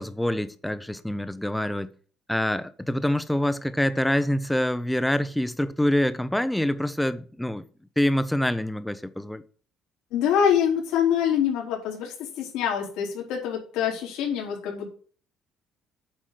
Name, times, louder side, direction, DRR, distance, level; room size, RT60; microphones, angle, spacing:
voice 1, 0.0-1.9 2.3-7.6 8.0-9.4, left 1 dB, 5° left, 0.7 m, -26 dB
voice 2, 10.1-14.9, left 8 dB, 85° left, 3.6 m, -25 dB
8.7 x 4.9 x 7.6 m
cardioid pair, 150°, 0 cm